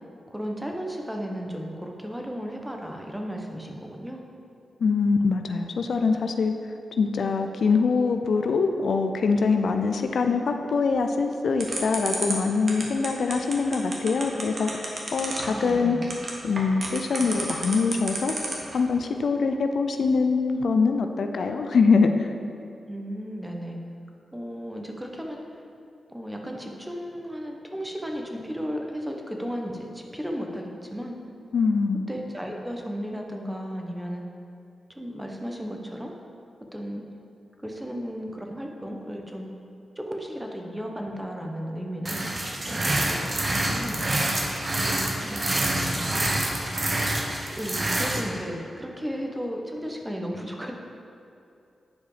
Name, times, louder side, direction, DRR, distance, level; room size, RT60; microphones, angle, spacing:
voice 1, 0.3-4.2 15.5-16.1 22.9-23.8 24.3-25.6 26.1-31.2 32.1-34.2 34.9-36.1 36.7-37.0 37.6-39.5 39.9-42.2 42.7-44.2 45.2-46.2 46.6-46.8 47.6-50.7, equal, 10° right, 1 dB, 1.2 m, -34 dB
voice 2, 4.8-16.0 16.4-18.4 18.7-22.3 31.5-32.0, left 4 dB, 70° left, 6 dB, 0.5 m, -24 dB
sound 1, 11.6-18.7, right 2 dB, 55° right, 1.5 m, -31 dB
sound 2, 42.1-48.2, right 1 dB, 40° right, 1.2 m, -27 dB
10.0 x 4.9 x 5.0 m, 2.6 s
cardioid pair, 55°, 0 cm